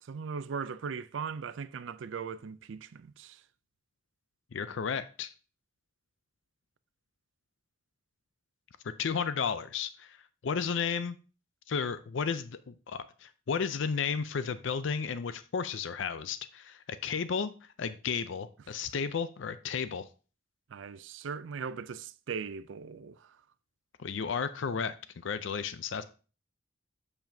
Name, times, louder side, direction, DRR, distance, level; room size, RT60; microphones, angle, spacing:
voice 1, 0.0-3.4 20.7-23.4, right 6 dB, 70° right, 0.4 m, -39 dB
voice 2, 4.5-5.3 9.0-10.2 10.4-11.2 11.7-20.1 24.0-26.0, left 6 dB, 70° left, 0.5 m, -33 dB
7.6 x 6.9 x 2.7 m
head